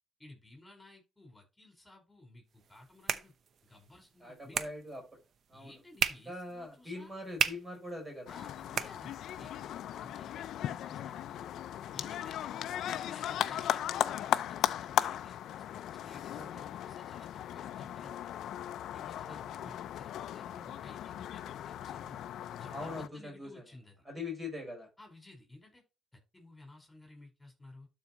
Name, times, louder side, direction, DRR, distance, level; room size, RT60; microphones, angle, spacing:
voice 1, 0.2-3.3 3.6-4.7 5.5-7.1 8.3-11.4 11.9-15.4 16.0-18.3 18.9-22.3 22.6-24.0 25.0-25.8 26.3-27.9, left 2 dB, 15° left, 2 dB, 4.8 m, -55 dB
sound 1, 2.5-9.6, right 7 dB, 60° right, 0.8 m, -38 dB
voice 2, 4.2-5.0 5.5-5.7 6.3-8.3 16.3-16.6 19.2-19.7 22.7-23.6 24.1-24.9, left 2 dB, 25° right, 2 dB, 5.2 m, -42 dB
sound 2, 8.3-23.1, left 11 dB, 75° left, 0.6 m, -37 dB
12.5 x 4.9 x 3.0 m, 0.27 s
cardioid pair, 90°, 0 cm